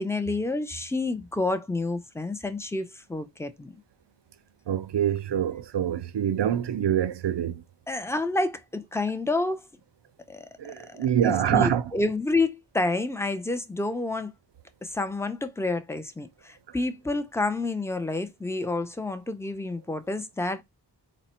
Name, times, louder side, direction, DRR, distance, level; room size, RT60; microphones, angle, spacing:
voice 1, 0.0-3.7 7.9-9.6 10.3-10.5 10.9-14.3 14.8-20.6, left 2 dB, 5° left, 0.6 m, -29 dB
voice 2, 4.7-7.6 10.6-11.8, right 10 dB, 85° right, 0.6 m, -25 dB
4.1 x 2.1 x 4.2 m
wide cardioid pair, 55°, 41 cm